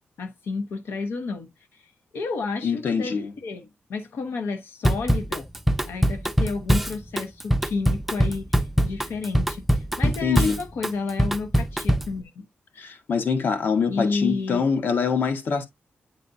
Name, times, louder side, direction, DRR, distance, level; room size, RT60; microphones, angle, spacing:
voice 1, 0.2-1.8 2.1-5.5 5.9-12.5 13.9-14.6, left 4 dB, 90° left, 1.0 m, -31 dB
voice 2, 2.6-3.3 10.0-10.6 12.8-15.7, left 5 dB, 60° left, 1.3 m, -24 dB
Drum kit / Drum, 4.8-12.2, equal, 5° right, 0.4 m, -23 dB
9.1 x 4.1 x 2.6 m
wide cardioid pair, 170°, 4 cm